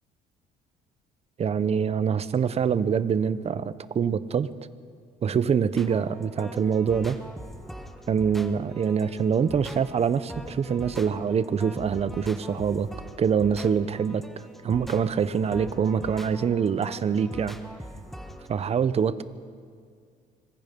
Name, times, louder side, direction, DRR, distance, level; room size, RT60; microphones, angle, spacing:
voice 1, 1.4-4.5 5.2-7.2 8.1-12.9 13.2-14.3 14.6-17.6 18.5-19.2, right 7 dB, 40° right, 14 dB, 0.9 m, -25 dB
sound 1, 5.8-18.5, equal, ahead, 1.5 m, -42 dB
25.5 x 22.0 x 5.4 m, 2.1 s
cardioid pair, 110°, 17 cm